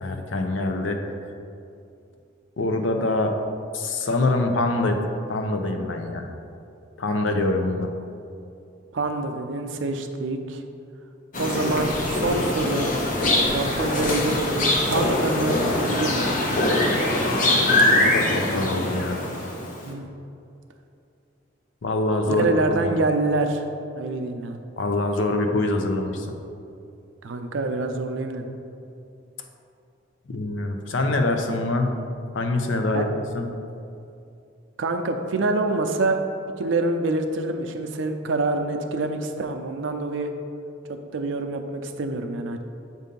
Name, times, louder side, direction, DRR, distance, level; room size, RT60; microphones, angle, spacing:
voice 1, 0.0-1.0 2.6-3.4 3.7-6.3 7.0-7.9 18.0-19.2 21.8-23.0 24.8-26.4 30.3-32.0 32.3-33.5, left 2 dB, 85° left, 5 dB, 0.6 m, -24 dB
voice 2, 8.9-10.6 11.4-12.9 13.5-16.4 19.8-20.1 22.3-23.6 24.0-24.6 27.2-28.5 32.9-33.1 34.8-36.2 36.6-40.3 40.9-42.6, right 2 dB, 80° right, 6 dB, 0.5 m, -26 dB
sound 1, 11.3-19.7, left 1 dB, 45° left, 0.8 m, -23 dB
7.6 x 2.7 x 5.2 m, 2.6 s
head